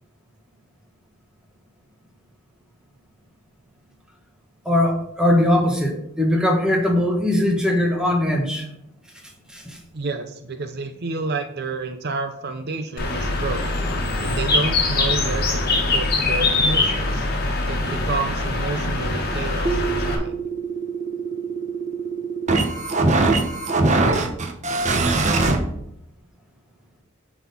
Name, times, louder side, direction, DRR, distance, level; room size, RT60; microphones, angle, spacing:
voice 1, 4.6-8.7 9.5-9.8, left 1 dB, 5° right, 1 dB, 1.4 m, -20 dB
voice 2, 9.9-13.6 14.2-15.6 15.9-17.3 17.7-20.3, right 3 dB, 50° right, 7 dB, 0.6 m, -29 dB
Bird, 13.0-20.2, left 2 dB, 50° left, 1.6 m, -23 dB
sound 1, 19.6-25.6, right 3 dB, 35° right, 1.0 m, -22 dB
9.2 x 4.2 x 5.6 m, 0.75 s
head